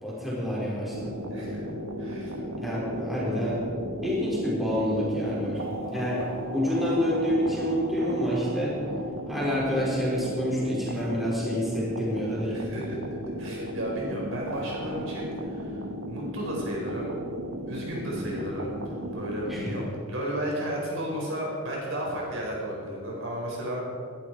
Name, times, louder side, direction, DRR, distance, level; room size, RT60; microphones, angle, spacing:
voice 1, 0.0-1.1 2.6-3.6 4.0-5.6 5.9-6.2 6.5-8.7 9.3-12.6 19.5-19.7, equal, ahead, -7 dB, 4.4 m, -28 dB
sound 1, 0.9-19.8, equal, 85° right, 1.6 m, -35 dB
voice 2, 1.3-1.7 2.0-2.4 12.5-15.8 16.1-17.1 17.7-23.9, right 1 dB, 60° right, -3 dB, 4.9 m, -33 dB
20.5 x 12.0 x 4.7 m, 2.3 s
head